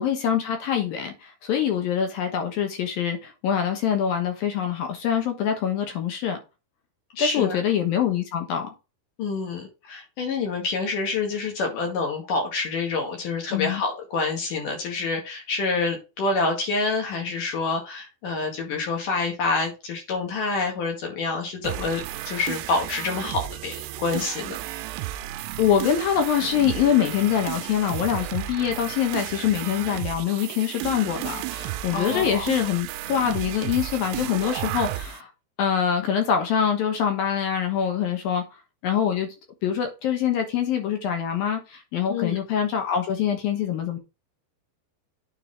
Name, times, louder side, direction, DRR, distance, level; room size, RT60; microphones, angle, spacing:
voice 1, 0.0-6.4 7.2-8.7 13.5-13.8 25.6-35.3 35.6-38.5 38.8-39.4 39.6-44.0, left 8 dB, 70° left, 2.5 m, -24 dB
voice 2, 7.1-7.6 9.2-24.6 31.9-32.5 42.1-42.4, left 3 dB, 55° left, 3.2 m, -27 dB
sound 1, 21.6-35.2, right 15 dB, 85° right, 2.4 m, -33 dB
9.4 x 4.9 x 3.6 m
omnidirectional pair, 5.3 m